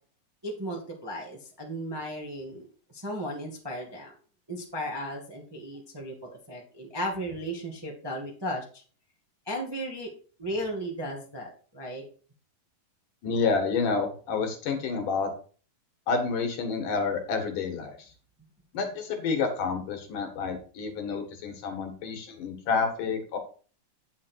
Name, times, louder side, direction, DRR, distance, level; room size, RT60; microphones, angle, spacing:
voice 1, 0.4-2.7 2.9-4.1 4.5-8.8 9.5-10.1 10.4-12.0, equal, 10° right, -1 dB, 1.3 m, -35 dB
voice 2, 13.2-15.3 16.1-17.9 18.7-23.4, left 4 dB, 70° left, 5 dB, 3.1 m, -29 dB
9.5 x 6.0 x 4.5 m, 0.40 s
omnidirectional pair, 3.8 m